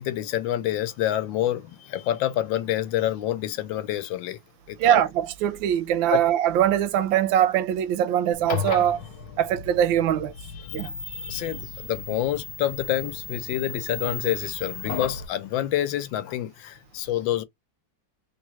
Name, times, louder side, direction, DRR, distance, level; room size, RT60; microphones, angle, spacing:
voice 1, 0.0-4.4 4.7-5.0 6.1-6.2 10.5-17.4, left 12 dB, 80° left, 1.3 m, -28 dB
voice 2, 4.8-9.0 9.4-10.3 10.7-10.9, right 11 dB, 85° right, 1.4 m, -22 dB
sound 1, 8.3-15.3, left 5 dB, 60° left, 1.0 m, -35 dB
3.5 x 2.7 x 3.0 m
omnidirectional pair, 2.1 m